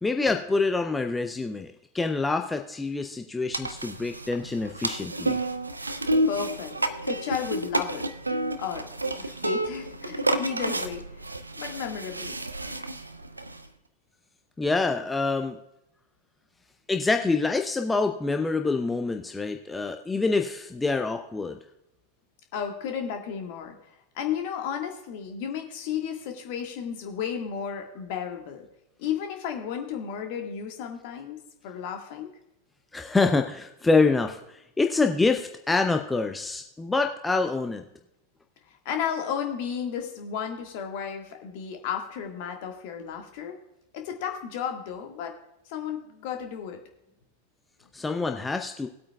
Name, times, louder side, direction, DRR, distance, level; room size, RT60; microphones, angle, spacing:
voice 1, 0.0-5.4 14.6-15.6 16.9-21.6 32.9-37.8 47.9-48.9, left 3 dB, 10° left, 5 dB, 0.6 m, -26 dB
sound 1, 3.5-13.7, right 1 dB, 80° right, 0.5 m, -30 dB
voice 2, 6.3-6.8 7.0-8.1 8.6-8.9 9.2-11.2 11.6-12.4 22.5-23.8 24.1-28.7 29.0-32.3 38.7-43.6 43.9-45.4 45.7-46.8, left 8 dB, 50° left, 4 dB, 1.7 m, -33 dB
19.0 x 8.5 x 2.3 m, 0.85 s
figure-of-eight pair, 90°, 0 cm